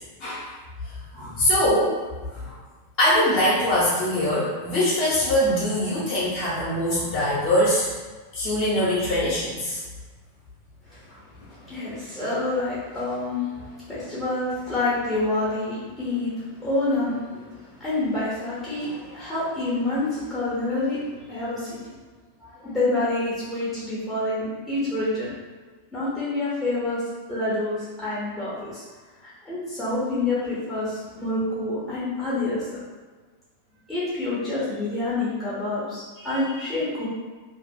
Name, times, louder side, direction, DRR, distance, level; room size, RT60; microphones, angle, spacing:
voice 1, 1.1-2.0 2.3-2.6 3.0-7.9 8.3-9.8, left 1 dB, 35° left, -10 dB, 0.9 m, -22 dB
voice 2, 10.8-22.0 22.4-25.4 25.9-27.0 27.3-28.8 29.2-32.8 33.9-37.1, left 2 dB, 10° left, -10 dB, 0.9 m, -28 dB
2.7 x 2.4 x 2.2 m, 1.4 s
figure-of-eight pair, 90°, 0 cm